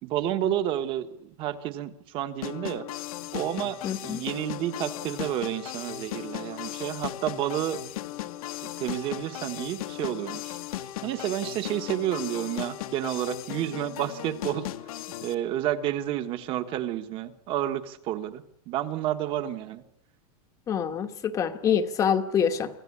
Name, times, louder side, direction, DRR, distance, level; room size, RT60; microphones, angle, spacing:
voice 1, 0.0-2.8 3.3-7.8 8.8-10.6 11.0-14.6 15.2-19.8, right 12 dB, 25° right, 10 dB, 1.4 m, -30 dB
sound 1, 2.4-15.3, left 13 dB, 70° left, 1.6 m, -37 dB
voice 2, 3.8-4.2 20.7-22.7, left 7 dB, 15° left, 8 dB, 1.2 m, -26 dB
26.0 x 16.0 x 9.9 m, 0.74 s
supercardioid pair, 180°, 19 cm